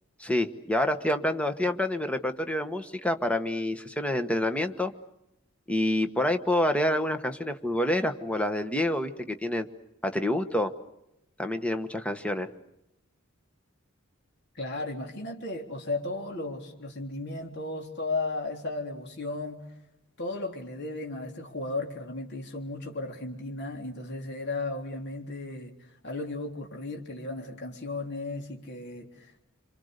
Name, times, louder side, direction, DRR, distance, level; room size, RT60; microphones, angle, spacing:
voice 1, 0.2-4.9 5.7-9.7 10.0-10.7 11.4-12.5, left 1 dB, 5° left, 8 dB, 1.2 m, -27 dB
voice 2, 14.5-19.7 20.2-25.7 26.0-29.4, left 2 dB, 55° left, 1 dB, 3.6 m, -35 dB
27.0 x 26.5 x 6.7 m, 0.86 s
head